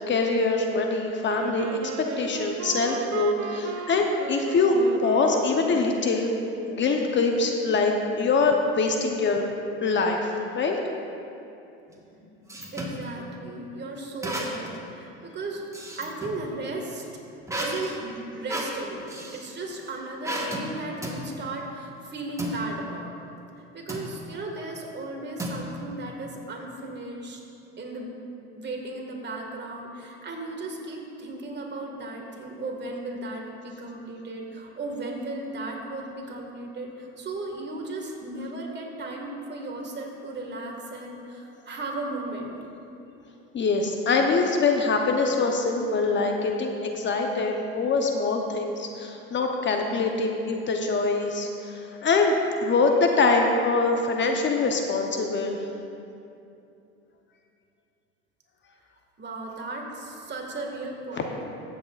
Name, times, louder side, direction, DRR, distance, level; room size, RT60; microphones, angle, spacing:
voice 1, 0.1-1.7 2.0-6.3 6.7-9.4 9.8-10.8 43.5-52.3 52.6-55.6 61.1-61.2, left 3 dB, 35° left, 2 dB, 0.9 m, -24 dB
Wind instrument woodwind instrument, 1.2-6.3, right 7 dB, 55° right, 0.7 m, -35 dB
sound 1, 11.9-13.0 14.2-14.8 15.2-16.4 17.5-19.5 20.2-20.7 21.0-21.2 22.4-22.6 23.9-24.1 25.4-26.0, right 1 dB, 10° right, 1.4 m, -33 dB
voice 2, 12.7-15.7 16.0-17.2 17.6-23.1 23.6-27.4 27.8-28.2 28.6-42.6 59.2-61.4, right 2 dB, 35° right, 1 dB, 1.8 m, -36 dB
14.5 x 8.3 x 2.4 m, 2.7 s
hypercardioid pair, 80°, 32 cm